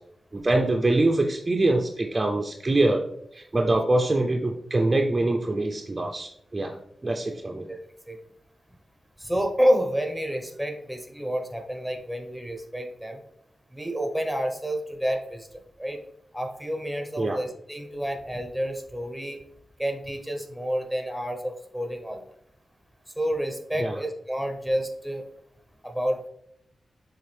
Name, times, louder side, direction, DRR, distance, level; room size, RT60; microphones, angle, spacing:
voice 1, 0.3-3.0 3.3-6.8 7.0-7.7 17.2-17.4 23.7-24.0, right 2 dB, 25° right, 3 dB, 0.5 m, -24 dB
voice 2, 9.2-13.2 13.7-15.5 15.8-16.0 16.3-19.4 19.8-22.3 23.2-25.2 25.8-26.3, equal, ahead, 3 dB, 1.0 m, -29 dB
7.0 x 3.9 x 3.4 m, 0.73 s
wide cardioid pair, 110°, 0 cm